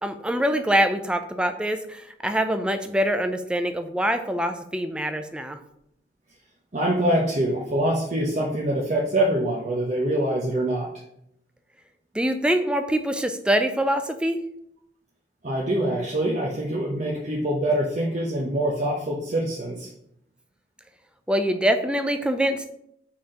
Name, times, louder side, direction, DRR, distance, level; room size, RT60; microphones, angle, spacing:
voice 1, 0.0-5.6 12.1-14.4 21.3-22.7, equal, 5° right, 8 dB, 0.5 m, -24 dB
voice 2, 6.7-10.9 15.4-19.9, right 1 dB, 40° right, -3 dB, 1.0 m, -24 dB
5.8 x 4.4 x 5.0 m, 0.75 s
head